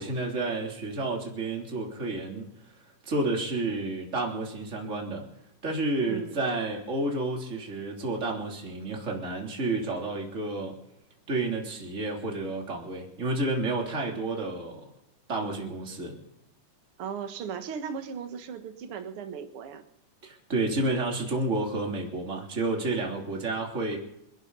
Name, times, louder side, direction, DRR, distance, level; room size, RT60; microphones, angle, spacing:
voice 1, 0.0-2.7 3.0-5.2 5.6-10.8 11.3-14.9 15.3-16.2 20.2-24.0, right 2 dB, 20° right, 0 dB, 3.3 m, -30 dB
voice 2, 6.1-6.4 17.0-19.8, right 6 dB, 50° right, 7 dB, 2.1 m, -37 dB
28.0 x 12.0 x 4.0 m, 0.85 s
omnidirectional pair, 3.7 m